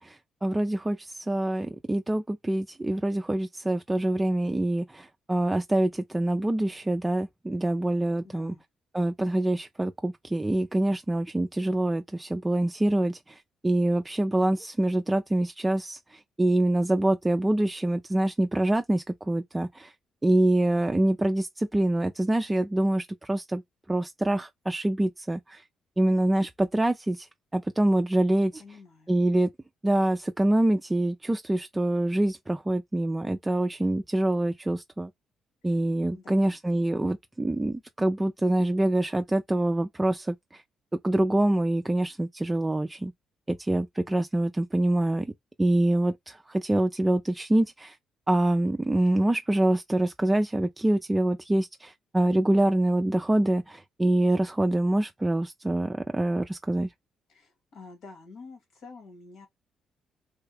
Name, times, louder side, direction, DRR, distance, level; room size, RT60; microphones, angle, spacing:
voice 1, 0.0-8.5 8.9-19.9 20.2-23.6 23.9-25.6 26.0-28.5 29.1-29.5 29.8-35.1 35.6-40.6 41.0-43.1 43.5-45.3 45.6-48.0 48.3-56.9, right 1 dB, 15° right, 0.3 m, -25 dB
voice 2, 8.2-8.7 28.6-29.1 36.1-36.6 57.3-59.5, left 4 dB, 75° left, 1.8 m, -48 dB
3.4 x 2.3 x 3.3 m
cardioid pair, 90°, 0 cm